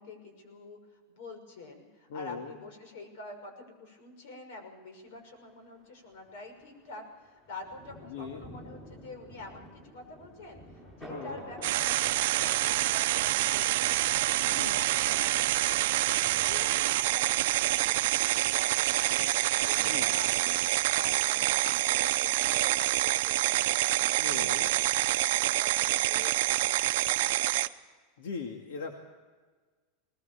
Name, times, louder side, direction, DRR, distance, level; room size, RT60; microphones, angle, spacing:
voice 1, 0.0-10.6 10.9-13.9 14.2-24.7 24.9-27.2 27.5-27.6, left 2 dB, 65° left, 6 dB, 6.0 m, -47 dB
voice 2, 2.1-2.6 8.1-8.4 11.1-11.4 14.4-14.8 19.8-20.0 24.2-24.7 28.2-29.0, left 5 dB, 85° left, 3 dB, 2.2 m, -39 dB
Thunder, 5.0-21.2, equal, 15° left, 7.7 m, -53 dB
sound 1, 11.6-27.7, right 16 dB, 65° right, 0.7 m, -27 dB
20.5 x 19.5 x 7.2 m, 1.4 s
supercardioid pair, 165°, 0 cm